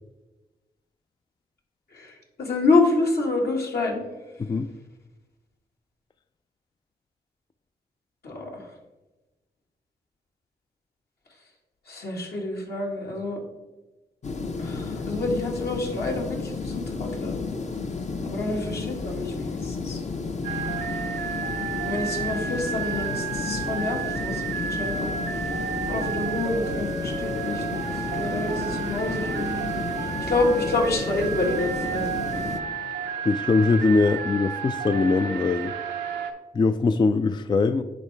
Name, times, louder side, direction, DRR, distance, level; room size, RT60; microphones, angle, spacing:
voice 1, 1.9-4.0 8.2-8.7 11.9-13.4 14.6-17.4 18.2-20.0 21.8-25.1 25.8-29.7 30.0-32.1, left 2 dB, 70° left, -1 dB, 1.8 m, -28 dB
voice 2, 4.4-4.7 33.2-35.7 36.5-37.8, left 3 dB, 25° left, 10 dB, 0.3 m, -22 dB
sound 1, 14.2-32.6, left 4 dB, 45° left, 0.8 m, -32 dB
sound 2, 20.4-36.3, right 7 dB, 90° right, 0.7 m, -32 dB
10.0 x 3.7 x 3.3 m, 1.1 s
supercardioid pair, 45°, 17 cm